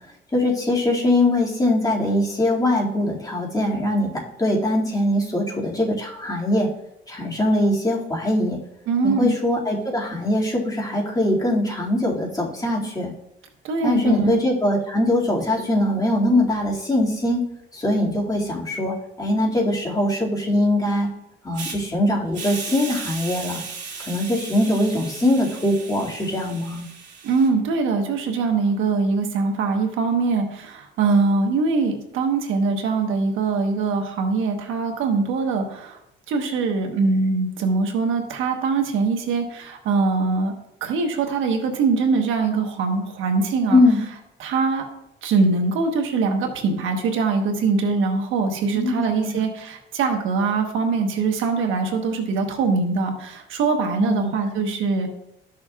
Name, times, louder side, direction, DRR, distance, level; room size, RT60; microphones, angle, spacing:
voice 1, 0.3-4.1 4.4-6.7 7.1-8.6 9.0-13.1 13.8-17.4 17.7-21.1 21.4-23.6 24.0-26.9 43.7-44.0 48.7-49.4 54.0-54.3, left 1 dB, 20° left, -3 dB, 2.3 m, -22 dB
voice 2, 8.9-9.3 13.6-14.4 27.2-36.0 36.3-40.5 40.8-43.8 44.4-44.9 45.2-55.1, right 4 dB, 90° right, 4 dB, 1.3 m, -22 dB
Hiss, 21.5-21.8 22.3-27.5, right 5 dB, 60° right, 2.3 m, -36 dB
13.0 x 6.4 x 2.4 m, 0.81 s
cardioid pair, 90°, 20 cm